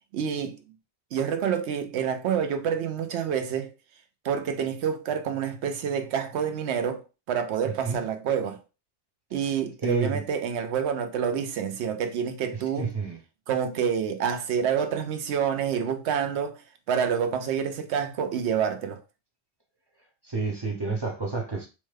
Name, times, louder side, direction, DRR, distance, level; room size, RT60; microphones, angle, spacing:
voice 1, 0.1-0.6 1.1-3.7 4.2-8.6 9.3-12.9 13.5-16.6 16.9-19.0, right 7 dB, 75° right, 0.8 m, -28 dB
voice 2, 7.6-8.0 9.4-9.5 9.8-10.2 12.5-13.2 20.2-21.7, right 3 dB, 30° right, 0.5 m, -30 dB
3.0 x 2.2 x 3.2 m
omnidirectional pair, 1.2 m